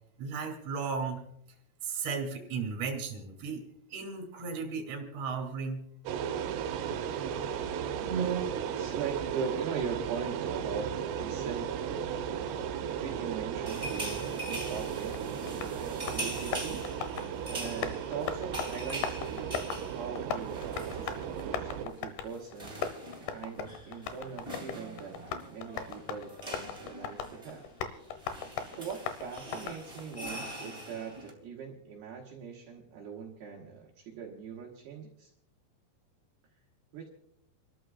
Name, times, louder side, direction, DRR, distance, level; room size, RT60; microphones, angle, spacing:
voice 1, 0.2-1.2 1.8-3.6 3.9-5.8, right 5 dB, 40° right, 3 dB, 3.3 m, -35 dB
sound 1, 6.1-21.9, right 8 dB, 85° right, 3.5 m, -36 dB
voice 2, 8.0-12.2 12.8-16.9 17.5-22.8 23.3-27.6 28.7-35.3 36.9-37.1, right 6 dB, 70° right, -1 dB, 2.9 m, -40 dB
sound 2, 13.6-21.5 21.8-22.0 22.2-31.3, right 1 dB, 20° right, 0.8 m, -43 dB
Tap, 14.7-30.2, left 7 dB, 75° left, 2.4 m, -40 dB
29.5 x 13.0 x 2.4 m, 0.73 s
omnidirectional pair, 5.7 m